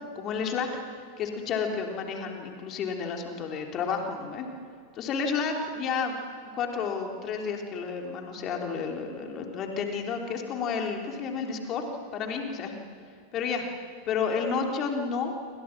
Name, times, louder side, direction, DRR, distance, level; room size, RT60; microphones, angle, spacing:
voice 1, 0.1-0.7 1.2-4.5 4.9-6.2 6.5-11.8 12.1-12.8 13.3-13.7 14.1-15.3, left 5 dB, 35° left, 2 dB, 3.5 m, -31 dB
28.5 x 25.5 x 6.1 m, 2.2 s
figure-of-eight pair, 90°, 0 cm